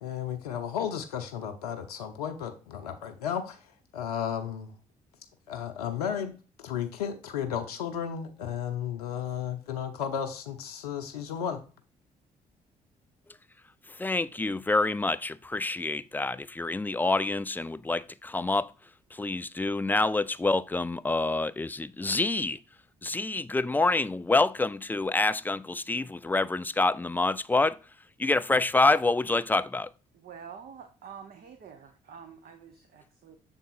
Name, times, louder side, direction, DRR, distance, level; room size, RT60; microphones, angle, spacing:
voice 1, 0.0-3.6 3.9-4.7 5.5-11.6, left 8 dB, 80° left, 0.6 m, -33 dB
voice 2, 14.0-18.7 19.1-22.6 23.0-27.8 28.2-29.9, left 3 dB, 10° left, 0.3 m, -27 dB
voice 3, 30.1-33.4, right 7 dB, 50° right, 0.8 m, -47 dB
7.0 x 3.7 x 4.1 m
figure-of-eight pair, 45°, 19 cm